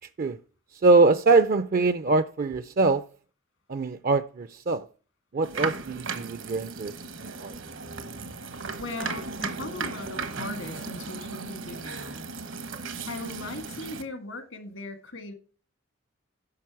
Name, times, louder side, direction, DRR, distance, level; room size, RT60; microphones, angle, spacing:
voice 1, 0.8-3.0 3.7-4.8 5.3-6.9 7.2-7.5, right 3 dB, 45° right, 0.4 m, -23 dB
sound 1, 5.4-14.0, right 4 dB, 75° right, 1.2 m, -36 dB
voice 2, 8.5-12.3 12.7-12.8 13.1-15.3, left 2 dB, 80° left, 1.7 m, -38 dB
10.5 x 6.4 x 4.7 m
head